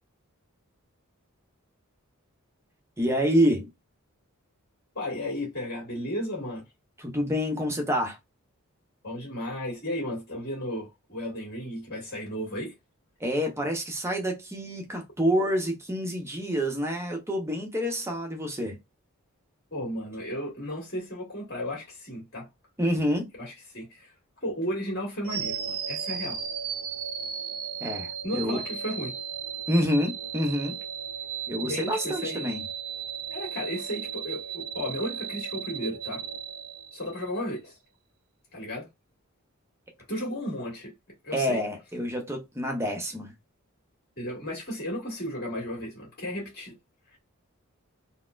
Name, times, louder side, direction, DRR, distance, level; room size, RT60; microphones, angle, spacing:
voice 1, 3.0-3.7 7.0-8.2 13.2-18.8 22.8-23.3 27.8-28.6 29.7-30.8 31.5-32.6 41.3-43.3, equal, 10° right, 0.7 m, -27 dB
voice 2, 5.0-6.6 9.0-12.7 19.7-22.5 23.4-24.1 24.4-26.4 28.2-29.1 31.6-32.5 33.3-36.2 36.9-37.8 38.5-38.9 40.1-40.9 41.2-41.6 44.2-46.8, equal, 45° left, 1.8 m, -34 dB
sound 1, 25.2-37.4, right 7 dB, 70° right, 0.5 m, -35 dB
4.0 x 2.1 x 2.5 m
head